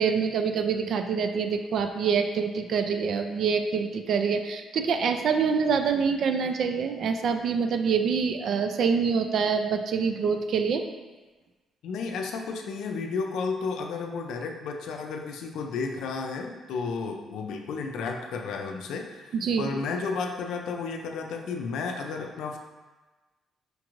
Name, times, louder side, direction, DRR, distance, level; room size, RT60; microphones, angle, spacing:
voice 1, 0.0-10.8 19.4-19.7, right 6 dB, 65° right, 6 dB, 0.3 m, -26 dB
voice 2, 11.8-22.6, left 4 dB, 80° left, 3 dB, 0.4 m, -32 dB
5.0 x 2.5 x 3.0 m, 1.2 s
cardioid pair, 90°, 0 cm